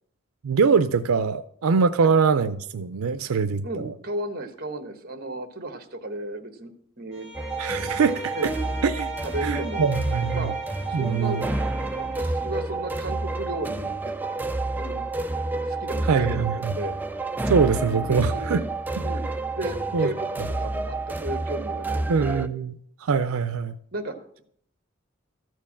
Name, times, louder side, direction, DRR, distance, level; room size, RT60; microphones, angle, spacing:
voice 1, 0.4-3.9 7.6-8.5 8.8-9.1 9.4-10.5 10.9-11.4 16.1-16.7 17.5-18.6 19.9-20.1 22.1-22.7 23.0-23.8, right 5 dB, 90° right, 0.5 m, -23 dB
voice 2, 3.6-6.7 7.0-7.3 8.3-8.5 9.2-9.9 10.3-10.5 10.9-11.5 12.0-14.1 14.8-15.0 15.7-17.0 18.0-18.7 19.0-19.2 19.6-22.5 23.9-24.4, right 1 dB, 45° right, 1.2 m, -34 dB
Bowed string instrument, 7.1-12.3, left 1 dB, 15° left, 2.6 m, -40 dB
sound 1, 7.3-22.5, right 2 dB, 10° right, 0.3 m, -29 dB
13.5 x 4.6 x 7.2 m
head